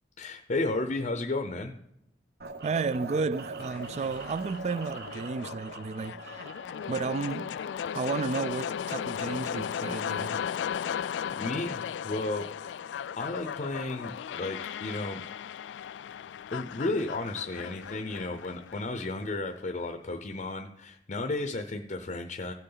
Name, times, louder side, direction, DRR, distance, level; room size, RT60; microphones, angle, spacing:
voice 1, 0.2-1.8 11.0-12.9 13.1-15.2 16.5-22.5, left 2 dB, 40° left, 0.6 m, -33 dB
sound 1, 2.4-8.4, right 3 dB, 60° right, 0.9 m, -43 dB
voice 2, 2.6-6.5 6.9-7.5 7.9-10.5, right 4 dB, 40° right, 0.3 m, -32 dB
sound 2, 3.6-19.6, left 8 dB, 85° left, 0.3 m, -36 dB
16.5 x 6.7 x 3.9 m
head